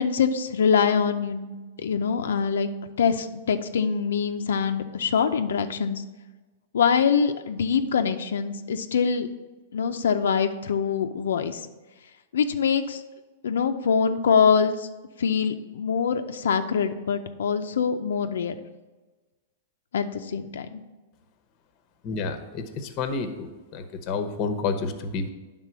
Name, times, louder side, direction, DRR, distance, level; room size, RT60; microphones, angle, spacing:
voice 1, 0.0-2.7 3.0-6.0 6.7-9.3 9.7-11.7 12.3-13.0 13.4-14.9 15.2-18.5 19.9-20.8, left 6 dB, 90° left, 6 dB, 0.5 m, -24 dB
voice 2, 22.0-25.3, left 4 dB, 30° left, 8 dB, 0.8 m, -30 dB
9.7 x 3.7 x 6.1 m, 1.2 s
supercardioid pair, 155°, 0 cm